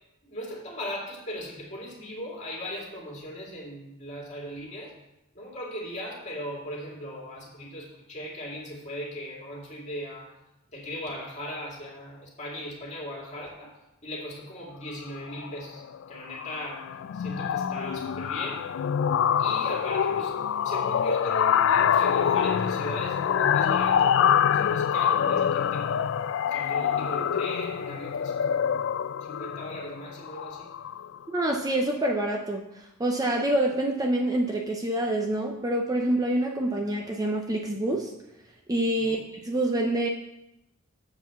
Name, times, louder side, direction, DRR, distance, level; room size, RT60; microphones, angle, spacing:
voice 1, 0.3-4.9 5.3-10.3 10.7-13.7 14.0-16.9 17.1-18.7 19.4-26.0 26.5-28.6 29.2-30.7 39.0-39.2, equal, 35° left, -3 dB, 2.4 m, -38 dB
sound 1, 15.2-15.5 15.8-16.0 16.3-31.2, left 8 dB, 60° left, 0.3 m, -25 dB
voice 2, 31.3-32.6 33.0-38.1 38.7-40.1, right 1 dB, 15° right, 1 dB, 0.5 m, -26 dB
7.6 x 4.8 x 6.9 m, 0.90 s
head